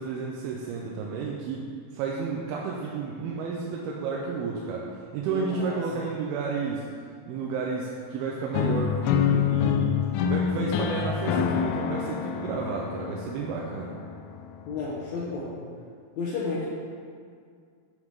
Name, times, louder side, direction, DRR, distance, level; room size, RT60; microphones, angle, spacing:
voice 1, 0.0-6.9 7.3-10.0 10.3-13.9, right 5 dB, 90° right, -2 dB, 2.6 m, -32 dB
voice 2, 5.3-5.8 14.7-15.6 16.2-16.7, left 3 dB, 65° left, -8 dB, 1.9 m, -32 dB
sound 1, 8.5-14.5, left 8 dB, 90° left, 2.5 m, -26 dB
8.1 x 8.0 x 3.6 m, 2.2 s
omnidirectional pair, 4.3 m